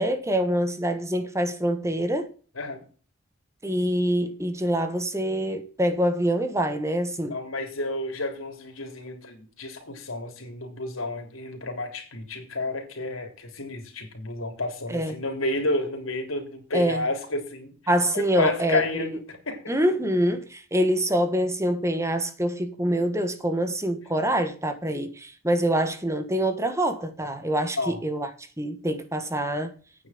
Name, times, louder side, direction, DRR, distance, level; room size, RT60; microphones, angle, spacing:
voice 1, 0.0-2.3 3.6-7.4 14.9-15.2 16.7-17.0 17.9-19.1 19.7-29.7, right 1 dB, 15° right, 1.4 m, -25 dB
voice 2, 7.3-17.7 18.4-19.6 27.8-28.0, left 2 dB, 85° left, 3.7 m, -30 dB
9.2 x 7.3 x 7.8 m
head